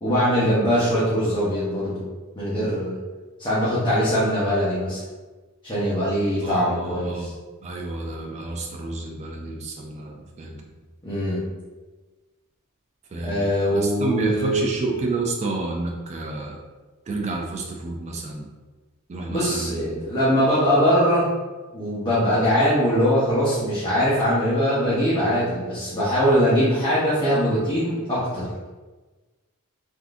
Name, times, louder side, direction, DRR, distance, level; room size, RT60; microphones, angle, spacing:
voice 1, 0.0-2.0 2.3-3.0 3.4-5.0 5.6-7.3 11.0-11.4 13.2-14.6 19.3-21.3 21.7-28.7, equal, 20° left, -10 dB, 0.7 m, -22 dB
voice 2, 6.4-7.3 7.6-10.6 13.1-16.6 17.1-18.5 19.1-20.0, right 3 dB, 30° right, 0 dB, 0.3 m, -30 dB
3.5 x 2.5 x 2.4 m, 1.3 s
head